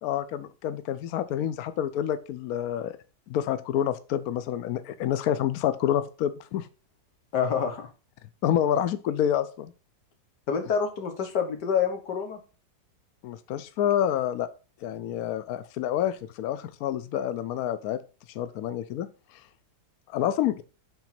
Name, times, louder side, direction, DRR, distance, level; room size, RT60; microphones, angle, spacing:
voice 1, 0.0-3.0 3.3-6.7 8.4-9.7 13.2-14.5 14.8-18.0 18.3-19.1 20.1-20.6, left 10 dB, 70° left, 13 dB, 1.0 m, -28 dB
voice 2, 7.3-7.9 10.5-12.4, left 7 dB, 90° left, 5 dB, 1.9 m, -27 dB
6.9 x 3.9 x 5.8 m, 0.35 s
omnidirectional pair, 1.8 m